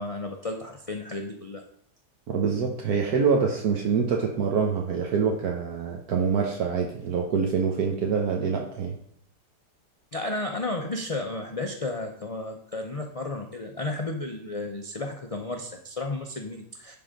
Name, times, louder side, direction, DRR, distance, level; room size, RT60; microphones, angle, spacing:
voice 1, 0.0-1.6 10.1-17.0, left 2 dB, 65° left, 3 dB, 0.3 m, -33 dB
voice 2, 2.3-9.0, right 6 dB, 70° right, 1 dB, 1.4 m, -25 dB
10.5 x 3.8 x 5.1 m, 0.68 s
omnidirectional pair, 1.7 m